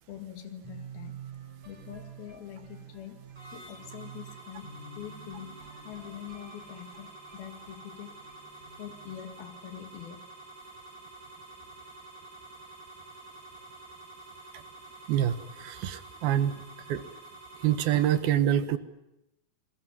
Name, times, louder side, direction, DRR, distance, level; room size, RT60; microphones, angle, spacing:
voice 1, 0.1-1.2 1.7-8.2 8.8-10.2, left 10 dB, 80° left, 7 dB, 3.8 m, -44 dB
sound 1, 0.6-10.5, right 6 dB, 45° right, 7.5 m, -49 dB
sound 2, 3.4-18.2, right 2 dB, 25° right, 6.1 m, -49 dB
voice 2, 15.1-16.5 16.9-17.1 17.6-18.8, right 11 dB, 85° right, 12 dB, 3.3 m, -26 dB
28.0 x 22.0 x 9.2 m, 0.90 s
omnidirectional pair, 4.3 m